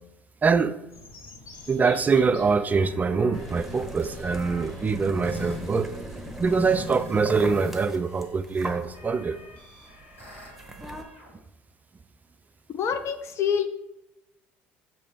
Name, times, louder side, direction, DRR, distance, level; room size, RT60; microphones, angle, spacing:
voice 1, 0.4-0.8 1.7-5.9 6.4-9.4, right 5 dB, 25° right, 11 dB, 0.4 m, -24 dB
sound 1, 0.9-5.9, left 3 dB, 65° left, 1.5 m, -49 dB
sound 2, 1.5-7.7 8.0-11.3, equal, 85° left, 2.0 m, -43 dB
sound 3, 3.3-11.0, right 1 dB, 5° right, 1.1 m, -40 dB
voice 2, 12.7-13.7, left 7 dB, 50° left, 9 dB, 0.8 m, -26 dB
6.7 x 3.1 x 5.1 m, 0.91 s
hypercardioid pair, 60°, 6 cm